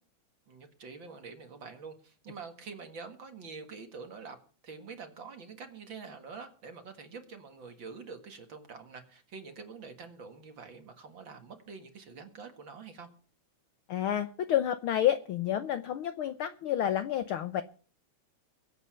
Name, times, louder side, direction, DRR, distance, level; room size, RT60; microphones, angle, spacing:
voice 1, 0.5-4.4 4.6-13.1, right 5 dB, 45° right, 7 dB, 2.2 m, -46 dB
voice 2, 13.9-17.6, left 11 dB, 80° left, 12 dB, 1.2 m, -29 dB
22.0 x 8.4 x 5.7 m, 0.42 s
omnidirectional pair, 3.3 m